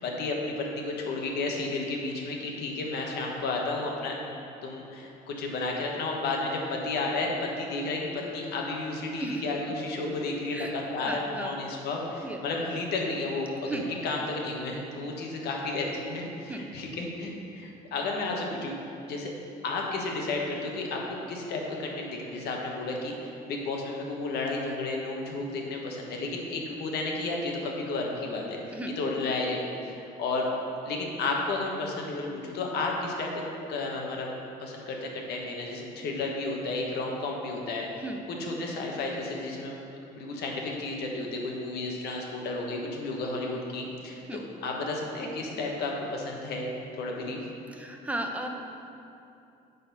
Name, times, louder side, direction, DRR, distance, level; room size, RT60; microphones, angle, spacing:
voice 1, 0.0-4.1 4.6-18.7 19.1-19.3 19.6-30.5 30.8-33.4 33.7-34.3 34.6-38.0 38.4-39.8 40.1-46.7 47.0-47.4, left 3 dB, 75° left, 0 dB, 1.3 m, -32 dB
voice 2, 9.2-9.8 10.5-10.8 11.0-11.6 12.2-12.4 13.6-13.8 16.5-16.6 28.7-28.9 38.0-38.2 44.3-44.4 47.7-48.5, right 2 dB, 10° right, 3 dB, 0.7 m, -35 dB
8.8 x 4.2 x 5.4 m, 2.7 s
cardioid pair, 110°, 17 cm